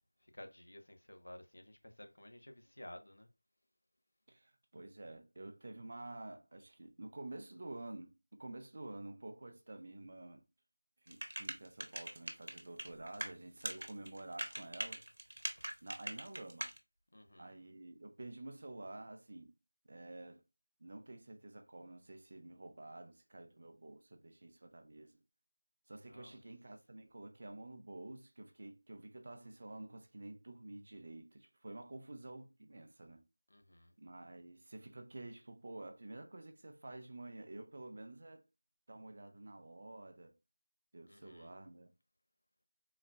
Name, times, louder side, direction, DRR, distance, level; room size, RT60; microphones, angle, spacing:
voice 1, 0.2-3.3 17.1-17.5 26.1-26.4 33.5-33.9 41.1-41.5, left 1 dB, 75° left, 0.8 m, -54 dB
voice 2, 4.3-10.4 11.0-15.0 15.8-16.7 17.4-19.5 19.9-20.4 20.8-25.2 25.9-33.2 34.0-38.4 38.9-40.3 40.9-41.9, right 2 dB, 40° right, 0.6 m, -50 dB
sound 1, 11.1-13.3 13.6-16.8, right 1 dB, 90° right, 0.9 m, -42 dB
4.0 x 2.7 x 2.2 m
figure-of-eight pair, 175°, 0 cm